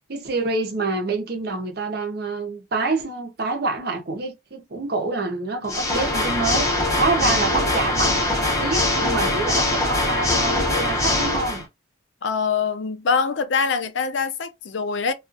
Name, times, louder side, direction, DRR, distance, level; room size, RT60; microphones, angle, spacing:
voice 1, 0.1-6.7 6.9-11.6, right 3 dB, 55° right, 0.7 m, -26 dB
Water / Mechanisms, 5.6-11.6, left 1 dB, 15° left, 0.7 m, -22 dB
voice 2, 12.2-15.1, left 5 dB, 70° left, 0.5 m, -24 dB
2.4 x 2.4 x 2.5 m
head